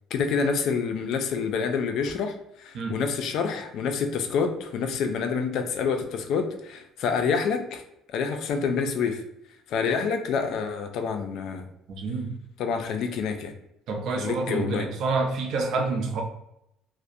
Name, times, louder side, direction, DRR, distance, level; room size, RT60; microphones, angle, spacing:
voice 1, 0.1-7.8 8.1-9.2 9.7-11.6 12.6-13.5 14.1-14.9, left 5 dB, 65° left, 6 dB, 0.3 m, -27 dB
voice 2, 11.9-12.3 13.9-16.2, right 3 dB, 60° right, 2 dB, 0.5 m, -28 dB
2.4 x 2.0 x 2.6 m, 0.81 s
cardioid pair, 115°, 0 cm